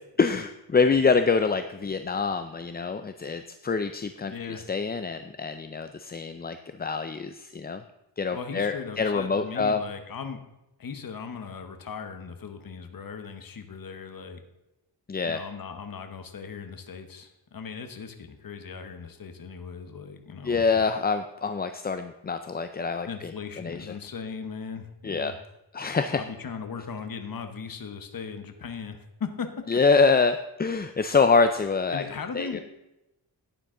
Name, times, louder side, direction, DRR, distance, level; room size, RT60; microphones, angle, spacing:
voice 1, 0.2-7.8 8.2-9.8 15.1-15.4 20.4-23.3 23.6-23.9 25.0-25.3 25.7-26.2 29.7-32.0 32.4-32.6, left 4 dB, 25° left, 9 dB, 0.4 m, -25 dB
voice 2, 4.2-4.6 8.3-10.4 10.8-14.4 15.2-20.8 23.1-25.4 26.2-29.5 31.9-32.6, left 6 dB, 50° left, 7 dB, 1.1 m, -38 dB
12.0 x 9.2 x 3.7 m, 0.94 s
wide cardioid pair, 115°, 46 cm